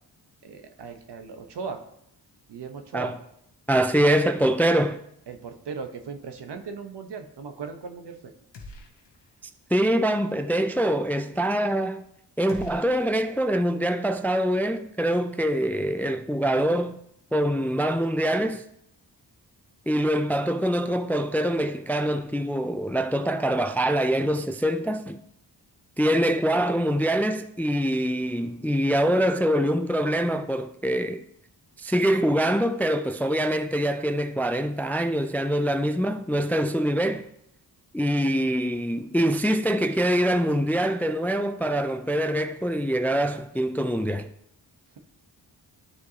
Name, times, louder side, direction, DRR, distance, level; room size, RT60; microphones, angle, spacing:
voice 1, 0.4-1.8 2.5-3.1 5.3-8.3, right 5 dB, 70° right, 1.0 m, -38 dB
voice 2, 3.7-5.0 9.7-12.0 12.4-17.0 17.3-18.6 19.9-25.2 26.0-31.2 31.8-37.2 37.9-44.3, equal, 5° left, 0.3 m, -24 dB
sound 1, 8.5-9.4 9.7-9.8 12.5-13.8, left 1 dB, 75° left, 1.3 m, -45 dB
12.5 x 4.6 x 2.8 m
cardioid pair, 65°, 42 cm